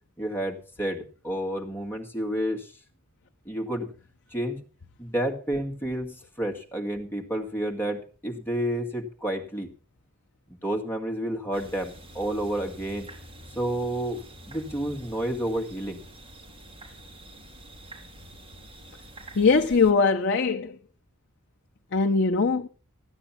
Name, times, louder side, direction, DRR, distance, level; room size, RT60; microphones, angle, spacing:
voice 1, 0.2-2.7 3.5-3.9 4.3-4.6 5.0-9.7 10.6-13.1 13.6-16.0, right 1 dB, 10° left, 1.9 m, -30 dB
sound 1, 11.5-19.9, right 1 dB, 25° right, 2.5 m, -46 dB
voice 2, 19.3-20.8 21.9-22.7, left 4 dB, 55° left, 0.8 m, -21 dB
14.5 x 9.2 x 5.7 m
head